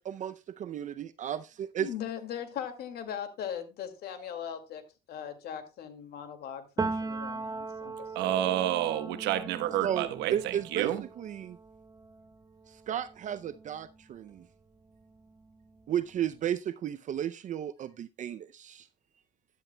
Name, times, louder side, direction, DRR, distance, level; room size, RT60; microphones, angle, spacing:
voice 1, 0.1-1.9 9.8-11.6 12.9-14.4 15.9-18.9, right 10 dB, 45° right, 0.5 m, -34 dB
voice 2, 1.8-4.8 5.1-8.4, left 9 dB, 70° left, 2.1 m, -39 dB
Piano, 6.8-14.4 14.7-16.3, right 3 dB, 20° right, 0.9 m, -40 dB
voice 3, 8.1-11.0, right 12 dB, 90° right, 1.1 m, -29 dB
13.0 x 11.0 x 2.2 m
cardioid pair, 110°, 17 cm